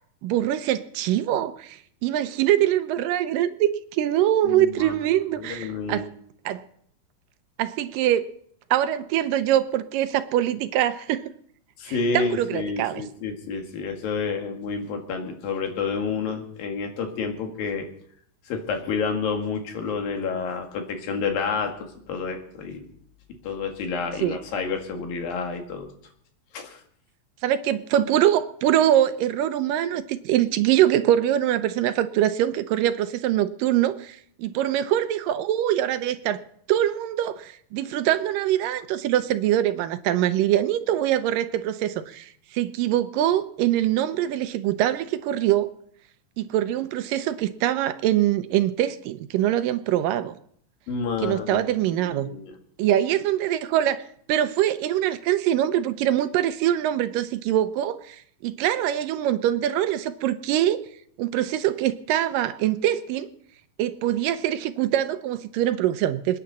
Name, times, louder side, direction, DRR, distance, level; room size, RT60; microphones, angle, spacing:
voice 1, 0.2-6.1 6.5-6.6 7.6-8.3 8.7-11.2 11.9-13.0 24.2-24.4 27.4-36.4 36.7-45.7 46.4-50.3 51.2-52.3 52.8-54.0 54.3-60.8 61.2-63.3 63.8-66.4, right 12 dB, 80° right, 11 dB, 2.4 m, -23 dB
voice 2, 4.4-5.0 5.4-6.1 11.8-17.9 18.5-21.7 22.1-22.9 23.4-25.9 26.5-26.8 50.9-51.6 51.9-52.5, left 5 dB, 85° left, 3 dB, 3.7 m, -29 dB
27.5 x 9.8 x 4.1 m, 0.64 s
omnidirectional pair, 4.0 m